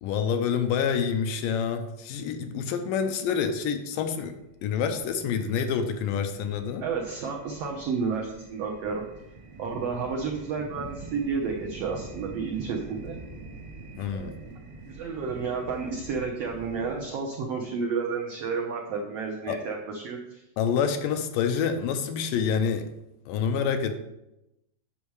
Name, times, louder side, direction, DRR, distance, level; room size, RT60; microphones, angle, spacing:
voice 1, 0.0-4.4 4.6-6.8 14.0-14.4 19.5-19.6 20.6-22.9 23.3-23.9, left 7 dB, 80° left, 7 dB, 2.2 m, -27 dB
sound 1, 4.3-17.0, right 3 dB, 50° right, 1.9 m, -45 dB
voice 2, 6.8-9.0 9.6-13.2 14.1-14.6 14.9-20.4, right 5 dB, 80° right, 0 dB, 1.4 m, -31 dB
8.7 x 6.3 x 4.7 m, 0.90 s
omnidirectional pair, 4.1 m